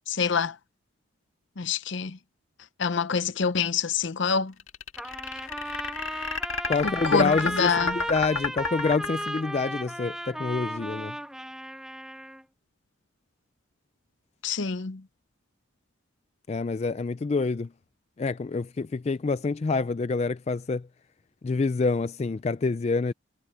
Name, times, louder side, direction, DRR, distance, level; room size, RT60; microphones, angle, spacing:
voice 1, 0.1-0.6 1.6-2.2 2.8-4.5 6.8-8.0 14.4-15.0, left 5 dB, 60° left, 0.7 m, -26 dB
sound 1, 4.6-9.6, left 4 dB, 85° left, 1.8 m, -31 dB
Trumpet, 5.0-12.4, right 1 dB, 5° right, 1.2 m, -35 dB
voice 2, 6.7-11.1 16.5-17.7 18.2-20.9 21.4-23.1, left 4 dB, 30° left, 0.3 m, -27 dB
head